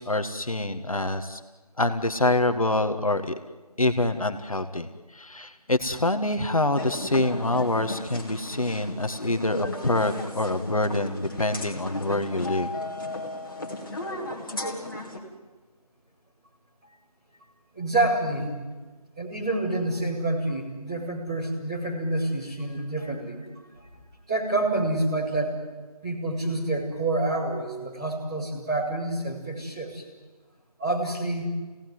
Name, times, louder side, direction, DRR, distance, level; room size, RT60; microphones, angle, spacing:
voice 1, 0.0-1.4 1.8-3.4 3.8-12.7, left 2 dB, 60° left, 7 dB, 1.8 m, -26 dB
sound 1, 6.8-15.2, left 2 dB, 35° left, 3.5 m, -35 dB
voice 2, 17.7-18.6 19.1-23.5 23.7-23.9 24.3-25.5 26.0-30.0 30.8-31.5, right 2 dB, 10° right, -10 dB, 3.2 m, -28 dB
27.5 x 18.5 x 9.6 m, 1.3 s
figure-of-eight pair, 175°, 20 cm